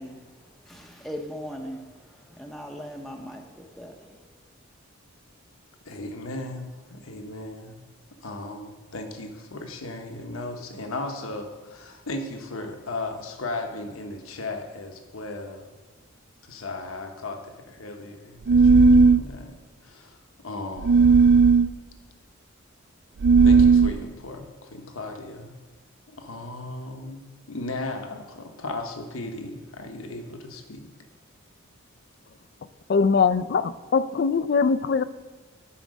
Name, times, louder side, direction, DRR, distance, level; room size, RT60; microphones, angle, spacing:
voice 1, 0.0-4.2, equal, ahead, 1 dB, 0.7 m, -40 dB
voice 2, 5.8-7.8 8.2-15.7 16.4-21.0 23.4-25.6 26.1-30.9, left 2 dB, 80° left, 5 dB, 1.1 m, -36 dB
sound 1, 18.5-19.2 20.8-21.7 23.2-24.0, right 4 dB, 50° right, 0.3 m, -15 dB
voice 3, 32.9-35.0, left 5 dB, 50° left, 15 dB, 0.3 m, -22 dB
10.0 x 5.1 x 6.3 m, 1.4 s
head